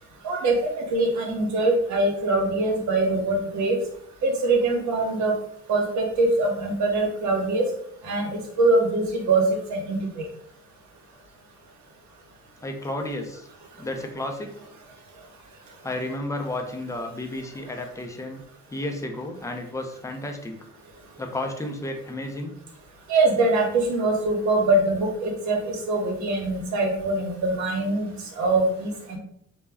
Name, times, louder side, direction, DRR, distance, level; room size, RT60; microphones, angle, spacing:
voice 1, 0.2-3.8 4.2-5.4 5.7-7.6 8.0-8.3 8.6-10.2 23.1-28.1 28.4-29.2, right 2 dB, 70° right, 1 dB, 0.8 m, -23 dB
voice 2, 12.6-13.5 13.8-14.5 15.8-18.4 18.7-20.6 21.2-22.5, left 1 dB, 10° left, 3 dB, 0.4 m, -32 dB
2.1 x 2.1 x 3.4 m, 0.69 s
cardioid pair, 90°, 30 cm